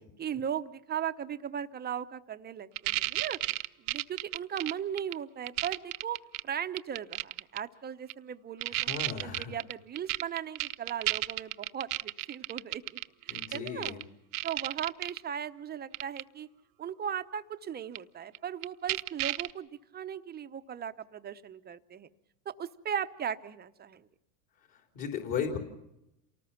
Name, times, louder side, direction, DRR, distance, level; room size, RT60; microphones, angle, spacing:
voice 1, 0.2-3.4 3.8-6.2 6.4-8.9 9.2-14.0 14.4-16.5 16.8-22.1 22.5-24.1, right 9 dB, 20° right, 10 dB, 0.9 m, -37 dB
sound 1, 2.8-5.1 5.5-6.4 6.8-7.6 8.1-8.2 8.6-14.0 14.3-15.2 15.9-16.2 18.0-18.1 18.4-18.5 18.6-19.5, right 22 dB, 50° right, 0.9 m, -32 dB
voice 2, 8.7-9.5 13.3-14.0 24.7-25.6, left 7 dB, 40° left, 2 dB, 4.0 m, -36 dB
28.0 x 19.0 x 5.8 m, 0.85 s
supercardioid pair, 120°, 48 cm